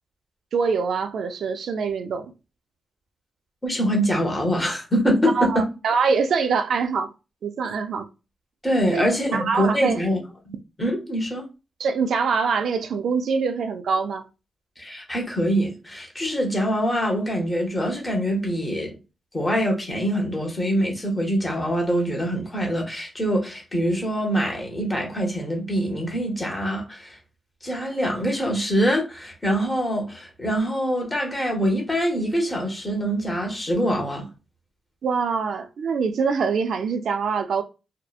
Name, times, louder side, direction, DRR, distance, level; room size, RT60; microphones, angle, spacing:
voice 1, 0.5-2.3 5.3-7.1 7.4-8.1 8.9-9.0 9.3-10.0 11.8-14.3 35.0-37.6, right 5 dB, 65° right, 0.3 m, -24 dB
voice 2, 3.6-5.7 8.6-10.2 10.4-11.5 14.8-18.9 19.3-27.2 27.6-34.3, equal, 15° left, 0.8 m, -24 dB
2.7 x 2.1 x 2.3 m
wide cardioid pair, 165°, 0 cm